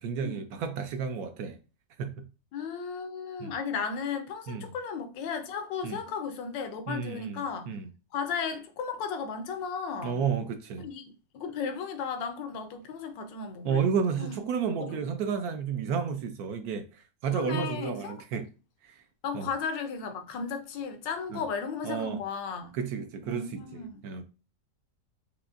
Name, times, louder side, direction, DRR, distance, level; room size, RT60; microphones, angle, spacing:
voice 1, 0.0-1.6 2.0-2.1 3.4-3.5 4.5-4.7 5.8-6.0 6.9-7.4 7.7-7.9 10.0-10.9 13.6-18.5 18.8-19.0 19.3-19.5 21.3-21.4 21.8-22.2 22.7-24.2, right 6 dB, 70° right, 0.9 m, -31 dB
voice 2, 2.5-7.8 8.1-10.2 10.8-11.0 11.3-13.9 14.2-14.4 14.8-15.0 17.3-18.4 19.2-22.7 23.2-24.0, left 5 dB, 90° left, 1.4 m, -35 dB
5.2 x 2.8 x 2.4 m
omnidirectional pair, 1.9 m